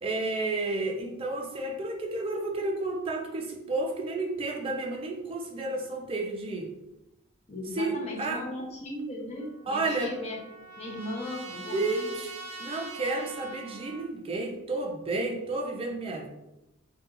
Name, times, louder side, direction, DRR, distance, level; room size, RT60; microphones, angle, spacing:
voice 1, 0.0-6.7 7.7-8.4 9.7-10.1 11.7-12.3 12.6-16.3, right 2 dB, 25° right, 1 dB, 0.4 m, -31 dB
voice 2, 7.5-10.4 10.8-12.2, left 1 dB, 30° left, -2 dB, 0.5 m, -37 dB
Trumpet, 9.4-14.1, right 3 dB, 85° right, 0.5 m, -43 dB
2.2 x 2.2 x 3.0 m, 0.93 s
head